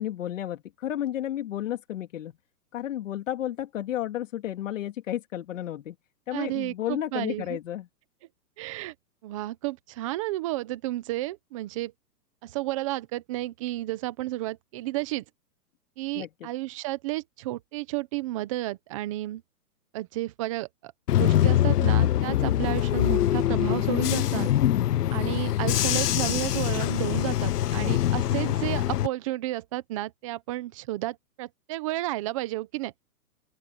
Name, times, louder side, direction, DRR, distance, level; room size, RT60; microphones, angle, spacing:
voice 1, 0.0-2.3 2.7-6.0 6.3-7.9 16.1-16.5 27.7-27.9, left 12 dB, 50° left, 3.4 m, -32 dB
voice 2, 6.3-7.6 8.6-8.9 9.2-11.9 12.4-15.2 16.0-19.4 19.9-24.5 25.1-32.9, right 17 dB, 20° right, 1.1 m, -32 dB
Bus / Engine, 21.1-29.1, left 12 dB, 70° left, 0.8 m, -24 dB
open air
hypercardioid pair, 165°, 49 cm